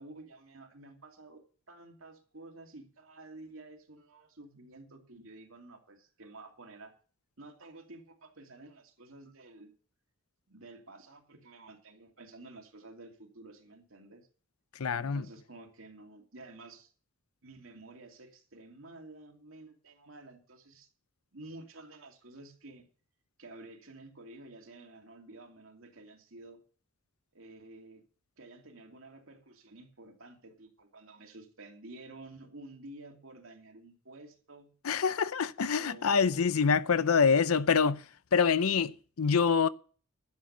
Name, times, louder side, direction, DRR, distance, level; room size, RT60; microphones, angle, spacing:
voice 1, 0.0-6.9 7.4-9.7 10.5-14.3 14.9-16.9 17.4-20.9 21.3-22.9 23.4-26.6 27.3-28.0 28.4-34.7 35.7-36.4, right 2 dB, 65° right, 2.5 m, -51 dB
voice 2, 14.7-15.3 34.8-38.0 38.3-39.7, left 6 dB, 85° left, 0.6 m, -26 dB
12.0 x 7.6 x 6.7 m
head